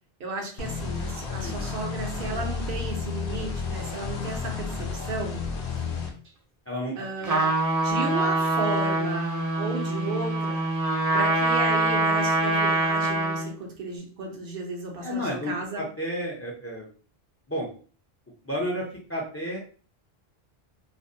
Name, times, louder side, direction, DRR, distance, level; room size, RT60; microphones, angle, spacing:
voice 1, 0.2-5.4 7.0-10.7 11.1-15.8, right 3 dB, 65° right, 2 dB, 0.9 m, -34 dB
sound 1, 0.6-6.1, left 5 dB, 65° left, 0.8 m, -32 dB
voice 2, 6.7-7.3 11.1-11.2 15.0-16.9 17.5-17.7 18.4-18.8 19.1-19.6, equal, 20° left, -3 dB, 0.4 m, -31 dB
Trumpet, 7.2-13.5, right 2 dB, 45° right, 0.5 m, -24 dB
2.5 x 2.1 x 2.5 m, 0.40 s
omnidirectional pair, 1.0 m